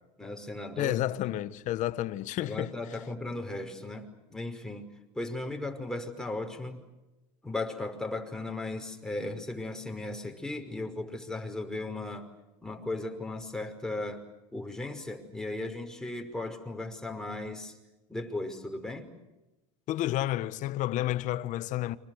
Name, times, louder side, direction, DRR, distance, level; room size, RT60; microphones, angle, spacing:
voice 1, 0.2-1.4 2.4-4.9 5.1-6.8 7.4-12.3 12.6-14.2 14.5-17.8 18.1-19.1, left 2 dB, 5° left, 5.4 m, -36 dB
voice 2, 0.8-2.7 19.9-22.0, left 14 dB, 55° left, 1.4 m, -30 dB
30.0 x 25.5 x 6.6 m
supercardioid pair, 105°, 15 cm